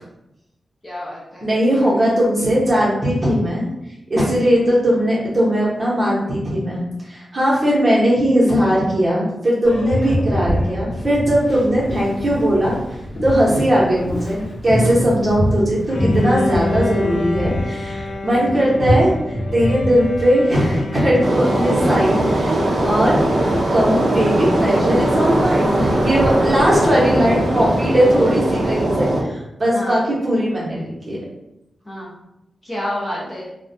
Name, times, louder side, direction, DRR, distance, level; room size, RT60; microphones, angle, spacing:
voice 1, 0.8-1.5 1.7-2.1 26.6-27.3 29.7-29.9 31.9-32.1 32.6-33.5, left 1 dB, 20° left, -6 dB, 0.6 m, -29 dB
voice 2, 1.4-3.7 4.1-6.8 7.0-12.8 13.2-19.1 19.5-23.2 23.7-31.2, equal, 25° right, -6 dB, 0.8 m, -18 dB
Boat Water vehicle, 9.6-28.6, equal, 40° left, 1.0 m, -27 dB
Bowed string instrument, 15.9-22.6, left 3 dB, 70° left, 0.3 m, -28 dB
sound 1, 21.2-29.2, right 1 dB, 55° right, 0.4 m, -19 dB
2.2 x 2.1 x 2.6 m, 0.86 s
wide cardioid pair, 155°, 0 cm